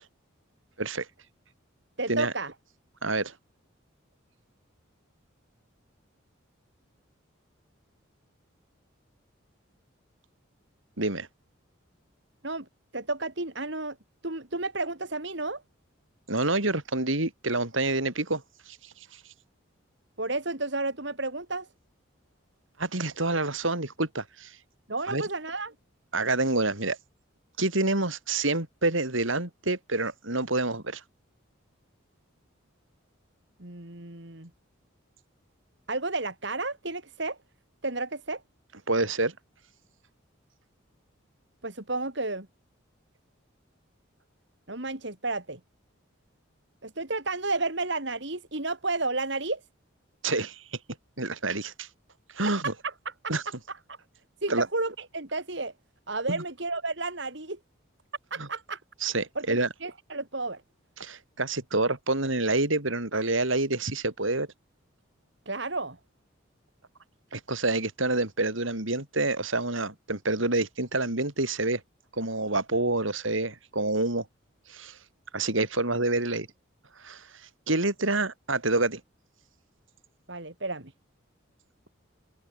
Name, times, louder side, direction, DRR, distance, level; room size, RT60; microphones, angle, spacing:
voice 1, 2.0-2.5 12.4-12.7 12.9-14.0 14.2-15.6 20.2-21.7 24.9-25.7 33.6-34.5 35.9-37.4 37.8-38.4 41.6-42.5 44.7-45.6 46.8-49.6 52.6-53.3 53.7-54.0 54.4-55.7 56.1-57.6 58.3-58.8 59.3-60.6 65.5-66.0 80.3-80.9, right 3 dB, 60° right, 3.1 m, -32 dB
voice 2, 3.0-3.3 11.0-11.3 16.3-19.2 22.8-24.6 25.1-25.2 26.1-27.0 27.6-31.0 38.9-39.3 50.2-50.6 51.2-51.9 52.3-52.7 53.3-53.4 54.5-54.7 56.3-56.4 58.4-58.5 59.0-59.7 61.0-64.5 67.3-71.8 72.1-74.3 74.7-75.0 75.3-76.5 77.0-77.3 77.7-79.0, right 2 dB, 75° right, 4.6 m, -27 dB
open air
head